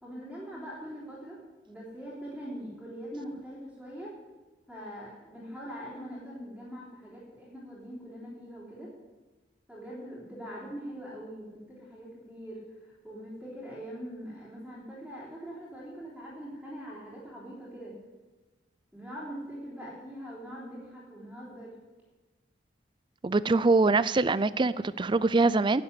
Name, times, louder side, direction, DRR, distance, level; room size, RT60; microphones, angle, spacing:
voice 1, 0.0-1.4 1.7-4.1 4.7-8.9 9.7-17.9 18.9-21.7, equal, ahead, -9 dB, 3.7 m, -42 dB
voice 2, 23.2-25.8, right 3 dB, 25° right, 17 dB, 0.4 m, -24 dB
11.0 x 8.3 x 9.7 m, 1.2 s
head